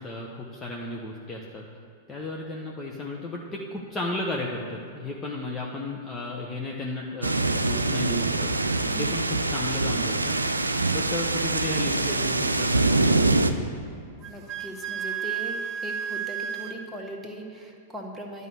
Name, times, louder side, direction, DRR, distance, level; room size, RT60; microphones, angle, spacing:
voice 1, 0.0-1.6 2.1-8.5 9.0-10.4 10.9-13.5, left 2 dB, 15° left, -2 dB, 1.1 m, -34 dB
sound 1, 7.2-13.5, right 2 dB, 80° right, 0.5 m, -24 dB
Wind instrument woodwind instrument, 14.2-16.8, right 7 dB, 35° right, 0.7 m, -32 dB
voice 2, 14.3-18.5, right 1 dB, 5° right, -1 dB, 1.6 m, -39 dB
11.0 x 5.4 x 8.1 m, 2.5 s
figure-of-eight pair, 100°, 0 cm